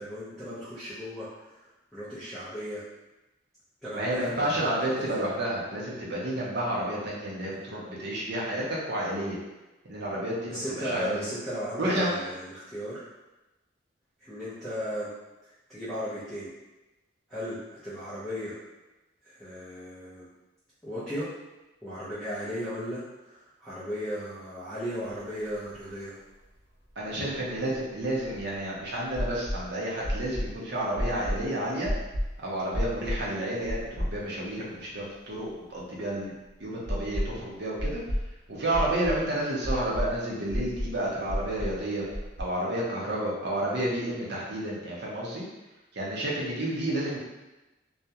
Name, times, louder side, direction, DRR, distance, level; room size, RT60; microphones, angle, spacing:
voice 1, 0.0-2.8 3.8-4.7 10.5-13.0 14.2-15.1 15.4-16.5 17.3-18.6 19.2-20.3 20.8-21.3 21.8-26.2, equal, ahead, -13 dB, 0.5 m, -36 dB
voice 2, 4.0-9.4 9.9-11.2 11.8-12.1 27.0-31.9 32.4-36.3 36.6-38.0 38.5-42.1 42.4-45.4 45.9-47.2, right 1 dB, 55° right, -5 dB, 0.6 m, -30 dB
sound 1, 25.4-25.5 25.7-25.8 27.3-28.6 29.1-29.6 30.0-30.5 31.0-31.4 31.8-32.3 32.7-33.2 33.7-34.4 34.8-34.9 36.9-37.4 37.8-38.3 38.7-39.2 39.6-40.1 40.5-40.9 41.3-41.7 42.1-42.4, equal, 80° left, 1.0 m, -30 dB
2.3 x 2.1 x 2.7 m, 1.0 s
head